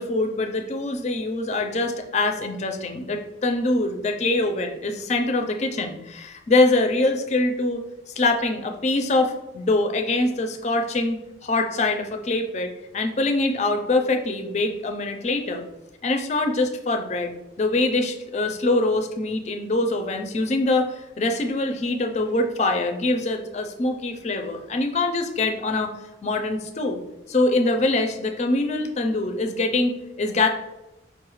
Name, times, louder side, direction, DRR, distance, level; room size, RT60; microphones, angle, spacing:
voice 1, 0.0-7.9 8.2-15.7 16.0-25.9 26.2-27.0 27.3-30.5, left 2 dB, 35° left, 4 dB, 0.4 m, -24 dB
5.4 x 2.3 x 3.0 m, 0.95 s
head